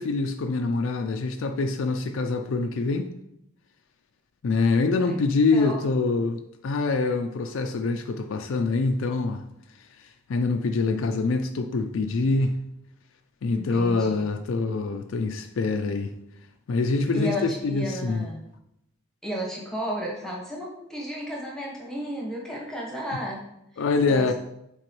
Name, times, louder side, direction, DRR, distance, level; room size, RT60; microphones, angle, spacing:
voice 1, 0.0-3.1 4.4-9.4 10.0-12.6 13.4-16.1 16.7-18.2 23.8-24.3, left 3 dB, 65° left, 6 dB, 0.4 m, -25 dB
voice 2, 13.6-14.3 17.1-18.4 19.2-23.4 23.7-24.3, equal, 5° left, -3 dB, 1.0 m, -33 dB
7.6 x 4.2 x 3.0 m, 0.81 s
head